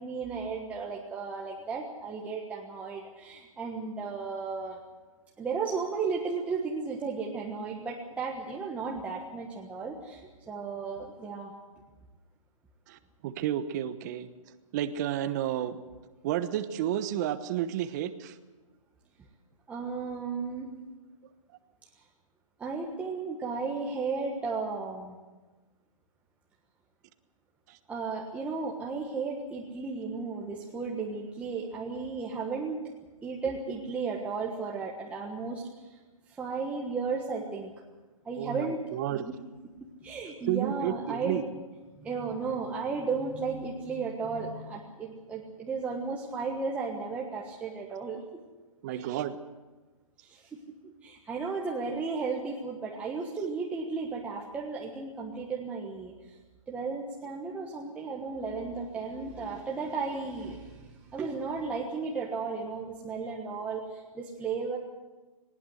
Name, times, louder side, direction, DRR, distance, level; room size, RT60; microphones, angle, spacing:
voice 1, 0.0-4.8 5.4-11.5 19.7-20.7 22.6-25.2 27.9-32.8 33.2-36.0 36.3-37.7 38.2-38.8 39.1-39.4 39.8-41.4 42.0-48.2 48.9-49.0 50.2-56.4 56.7-64.8, right 4 dB, 5° right, -2 dB, 1.4 m, -34 dB
voice 2, 12.9-14.3 14.7-15.8 16.2-18.4 27.7-27.8 38.4-39.3 40.4-41.4 48.8-49.3, right 11 dB, 30° right, 11 dB, 1.1 m, -31 dB
20.0 x 19.0 x 8.0 m, 1.2 s
hypercardioid pair, 155°, 18 cm